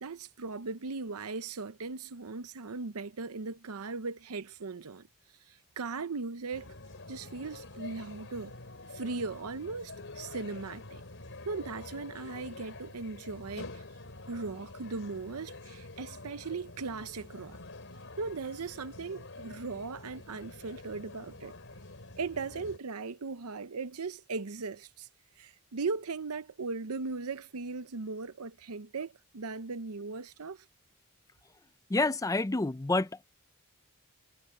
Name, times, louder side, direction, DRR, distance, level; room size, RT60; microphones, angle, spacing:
voice 1, 0.0-5.1 5.5-6.7 7.1-8.5 8.9-11.0 11.5-13.8 14.3-17.6 18.2-21.6 22.2-25.1 25.4-30.6, right 4 dB, 75° right, 0.7 m, -38 dB
sound 1, 6.5-22.8, left 2 dB, 60° left, 4.6 m, -47 dB
voice 2, 31.9-33.2, left 2 dB, 15° left, 0.4 m, -28 dB
head